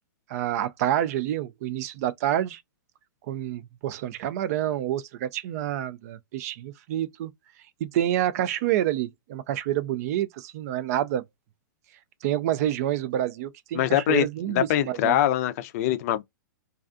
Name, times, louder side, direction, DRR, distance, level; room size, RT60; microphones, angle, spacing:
voice 1, 0.3-2.6 3.3-7.3 7.8-11.2 12.2-15.2, right 12 dB, 50° right, 0.3 m, -28 dB
voice 2, 13.7-16.2, left 12 dB, 45° left, 0.4 m, -24 dB
2.4 x 2.3 x 2.4 m
hypercardioid pair, 135°, 11 cm